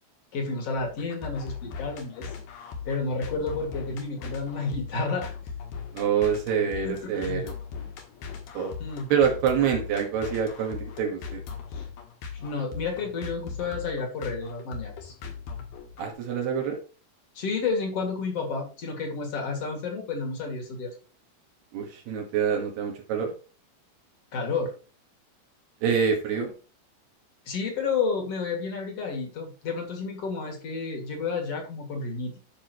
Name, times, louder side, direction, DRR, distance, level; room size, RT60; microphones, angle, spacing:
voice 1, 0.3-2.3 2.9-5.3 6.8-7.4 8.8-9.1 11.7-11.9 12.3-15.1 17.3-20.9 24.3-24.7 27.5-32.4, left 4 dB, 40° left, 2 dB, 2.7 m, -31 dB
sound 1, 0.7-16.1, left 6 dB, 65° left, 3.2 m, -39 dB
voice 2, 5.9-7.5 8.5-8.7 9.1-11.4 16.0-16.8 21.7-23.3 25.8-26.5, right 7 dB, 70° right, 1 dB, 3.5 m, -26 dB
12.5 x 6.2 x 3.1 m, 0.35 s
omnidirectional pair, 4.9 m